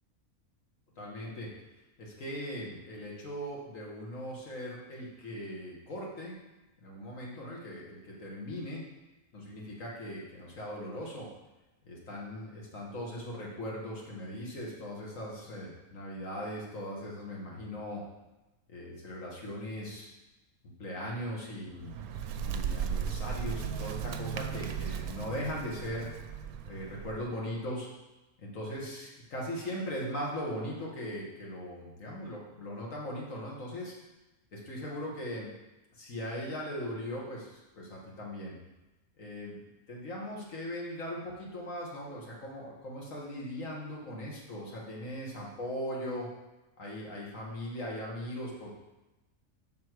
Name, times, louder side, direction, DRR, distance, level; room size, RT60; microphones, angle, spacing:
voice 1, 1.0-1.5 2.0-6.4 6.8-8.8 9.3-11.3 11.8-18.0 18.7-20.1 20.6-22.0 22.4-26.1 26.7-27.9 28.4-33.9 34.5-35.5 35.9-38.6 39.2-39.6 39.9-46.3 46.8-48.8, equal, 65° left, -3 dB, 2.1 m, -39 dB
Bird, 21.7-27.4, right 7 dB, 90° right, 1.1 m, -36 dB
7.3 x 5.9 x 4.7 m, 1.0 s
omnidirectional pair, 1.5 m